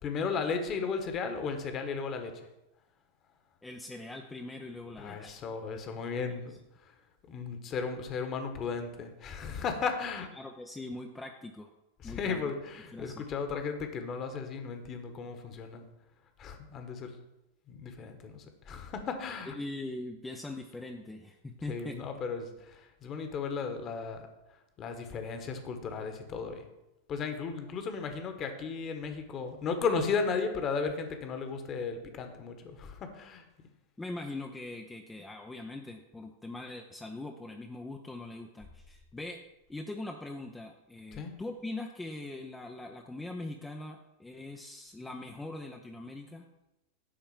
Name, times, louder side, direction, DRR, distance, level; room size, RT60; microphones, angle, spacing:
voice 1, 0.0-2.5 5.0-6.5 7.3-10.3 12.0-15.8 16.4-17.2 17.7-19.5 21.7-24.2 24.8-26.7 27.1-33.4 41.1-41.3, left 5 dB, 30° left, 6 dB, 1.5 m, -35 dB
voice 2, 3.6-5.4 10.4-11.7 12.0-12.5 12.9-13.2 19.5-22.0 34.0-39.4 39.7-46.5, left 2 dB, 10° left, 2 dB, 0.7 m, -42 dB
10.5 x 4.4 x 7.4 m, 0.95 s
figure-of-eight pair, 90°, 0 cm